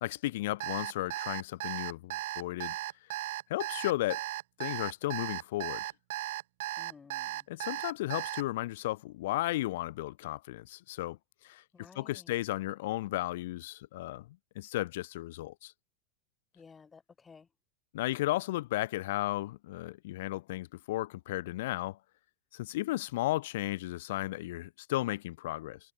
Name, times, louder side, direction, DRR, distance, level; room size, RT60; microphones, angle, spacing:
voice 1, 0.0-2.8 3.5-4.2 4.6-5.8 7.5-11.2 11.4-11.6 11.9-14.3 14.5-15.7 17.9-22.0 22.5-25.8, left 17 dB, 55° left, 1.5 m, -34 dB
Alarm, 0.6-8.4, right 17 dB, 55° right, 0.9 m, -36 dB
voice 2, 6.8-7.5 11.7-12.4 16.5-17.5, left 5 dB, 15° left, 6.7 m, -55 dB
figure-of-eight pair, 90°, 0 cm